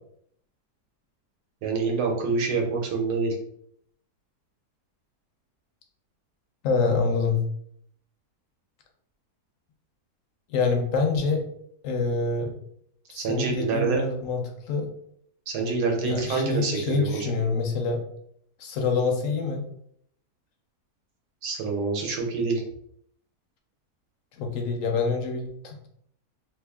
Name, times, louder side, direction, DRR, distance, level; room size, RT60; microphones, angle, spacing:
voice 1, 1.6-3.4 13.1-14.0 15.5-17.3 21.4-22.6, right 4 dB, 85° right, 2 dB, 1.4 m, -26 dB
voice 2, 6.6-7.4 10.5-11.4 11.8-12.5 13.1-14.9 16.0-18.0 18.6-19.6 24.4-25.9, left 4 dB, 65° left, 3 dB, 0.9 m, -26 dB
3.0 x 2.4 x 3.4 m, 0.69 s
omnidirectional pair, 1.7 m